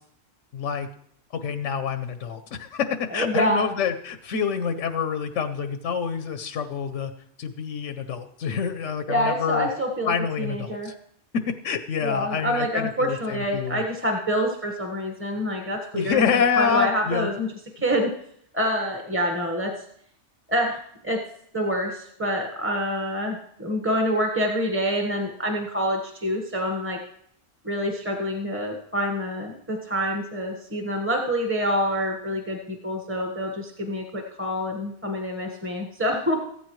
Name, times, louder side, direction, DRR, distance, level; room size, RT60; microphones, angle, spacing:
voice 1, 0.5-0.9 1.4-7.1 7.4-9.7 10.1-10.9 11.6-13.8 15.9-17.3, left 6 dB, 85° left, 9 dB, 1.1 m, -27 dB
voice 2, 3.1-3.7 9.1-10.9 12.0-17.5 17.8-18.1 18.5-19.7 20.5-20.8 21.0-21.2 21.5-27.0 27.6-36.5, equal, 10° right, 1 dB, 1.3 m, -26 dB
15.0 x 13.5 x 3.1 m, 0.68 s
omnidirectional pair, 1.2 m